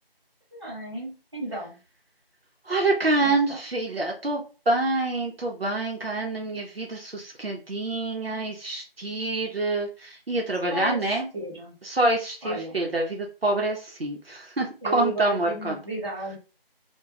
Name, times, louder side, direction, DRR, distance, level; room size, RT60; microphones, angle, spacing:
voice 1, 0.5-1.8 3.2-3.6 10.7-11.7 12.4-12.7 14.8-16.4, right 2 dB, 25° right, -8 dB, 0.9 m, -33 dB
voice 2, 2.7-11.3 11.8-15.8, right 2 dB, 70° right, 1 dB, 0.7 m, -26 dB
2.3 x 2.2 x 2.8 m, 0.33 s
figure-of-eight pair, 170°, 30 cm